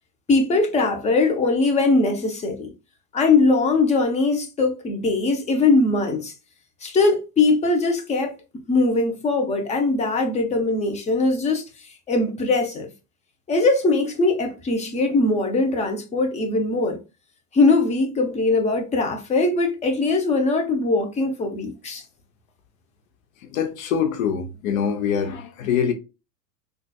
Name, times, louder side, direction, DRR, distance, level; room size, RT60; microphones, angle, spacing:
voice 1, 0.3-2.7 3.1-6.3 6.8-8.3 8.7-12.9 13.5-17.0 17.5-22.0, left 3 dB, 15° left, 0.6 m, -21 dB
voice 2, 23.4-25.9, left 7 dB, 60° left, 0.8 m, -24 dB
3.9 x 2.5 x 2.2 m
hypercardioid pair, 110°, 47 cm